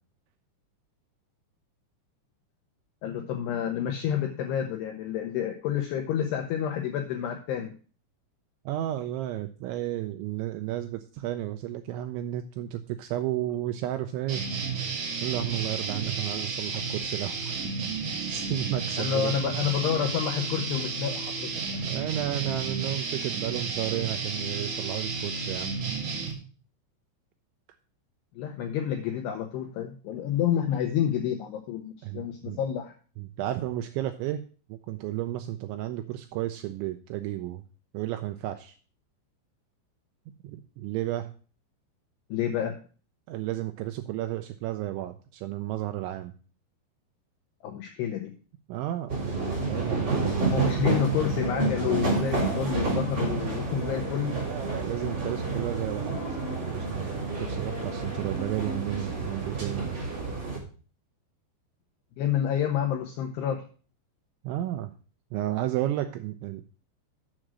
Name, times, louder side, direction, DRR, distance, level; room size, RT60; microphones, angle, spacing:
voice 1, 3.0-7.7 19.0-21.5 28.4-32.9 42.3-42.8 47.6-48.3 50.5-54.3 62.2-63.6, left 9 dB, 85° left, 4 dB, 2.4 m, -29 dB
voice 2, 8.7-14.4 15.2-17.6 18.2-19.4 21.6-26.0 32.0-32.6 33.2-34.4 34.7-37.6 37.9-38.8 40.4-41.3 43.3-46.3 48.7-50.8 54.5-56.2 56.6-59.9 64.4-64.9 65.3-66.6, right 13 dB, 85° right, 8 dB, 2.7 m, -33 dB
sound 1, 14.3-26.3, right 5 dB, 50° right, 2.7 m, -32 dB
sound 2, 49.1-60.6, right 3 dB, 30° right, 3.2 m, -29 dB
7.7 x 6.3 x 6.0 m, 0.39 s
omnidirectional pair, 5.8 m